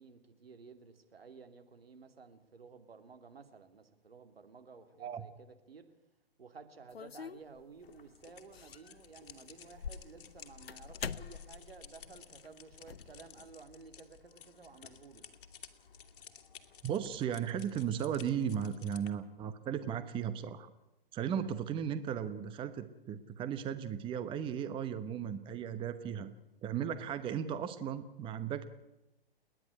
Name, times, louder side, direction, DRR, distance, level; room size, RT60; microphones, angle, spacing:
voice 1, 0.0-5.9 6.4-15.2, right 5 dB, 80° right, 2.9 m, -54 dB
sound 1, 6.9-7.9 8.5-8.9 9.3-13.5, left 7 dB, 90° left, 0.7 m, -45 dB
sound 2, 7.8-19.1, left 7 dB, 60° left, 2.4 m, -55 dB
voice 2, 16.8-20.7 21.1-26.3 26.6-28.6, right 8 dB, 15° right, 1.0 m, -36 dB
29.5 x 10.5 x 9.8 m
hypercardioid pair, 130°, 29 cm